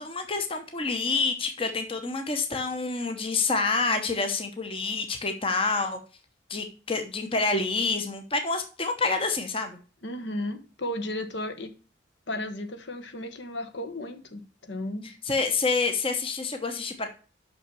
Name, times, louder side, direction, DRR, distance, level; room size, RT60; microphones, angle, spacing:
voice 1, 0.0-6.0 6.5-9.8 15.3-17.1, left 3 dB, 30° left, 0.9 m, -27 dB
voice 2, 10.0-11.7 12.3-15.1, left 1 dB, 65° left, 1.1 m, -34 dB
6.0 x 5.8 x 6.8 m
head